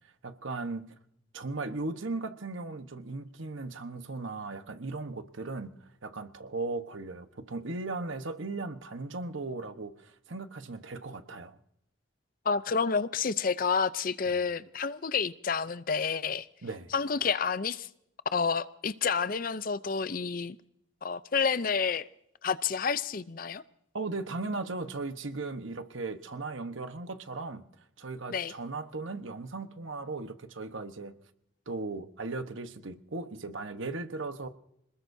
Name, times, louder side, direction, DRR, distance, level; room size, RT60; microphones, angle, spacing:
voice 1, 0.2-0.9 1.3-5.7 6.0-11.6 16.6-16.9 23.9-27.6 28.0-31.1 31.7-34.5, right 3 dB, 75° right, 1.2 m, -37 dB
voice 2, 12.4-16.5 16.9-17.9 18.3-20.6 21.0-22.1 22.4-23.6 28.3-28.5, left 5 dB, 45° left, 0.5 m, -29 dB
26.5 x 20.0 x 2.7 m
head